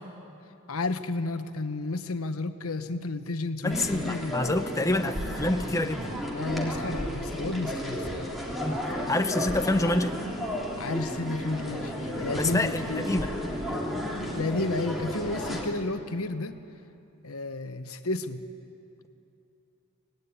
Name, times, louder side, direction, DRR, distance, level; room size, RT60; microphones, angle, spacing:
voice 1, 0.7-4.4 6.3-8.2 10.8-13.0 14.3-16.6 17.2-18.4, left 2 dB, 75° left, 9 dB, 1.2 m, -32 dB
voice 2, 3.6-6.2 8.6-10.2 12.4-13.3, left 2 dB, 15° left, 6 dB, 0.8 m, -27 dB
sound 1, 3.7-15.6, equal, ahead, 3.4 m, -33 dB
25.5 x 19.5 x 9.8 m, 2.8 s
head